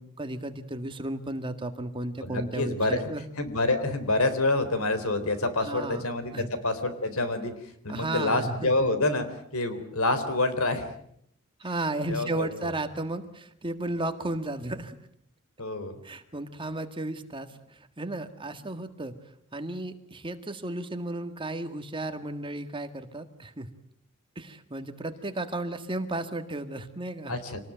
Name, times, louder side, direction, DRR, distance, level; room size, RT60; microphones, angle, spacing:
voice 1, 0.0-3.3 5.6-6.1 6.3-6.5 7.9-8.7 11.6-15.0 16.0-23.7 24.4-27.4, right 2 dB, 25° right, 8 dB, 1.8 m, -34 dB
voice 2, 2.2-3.0 3.4-7.5 7.8-9.3 9.5-10.9 12.1-12.5 15.6-15.9 27.3-27.6, left 2 dB, 80° left, 11 dB, 3.7 m, -27 dB
26.5 x 19.5 x 9.1 m, 0.72 s
head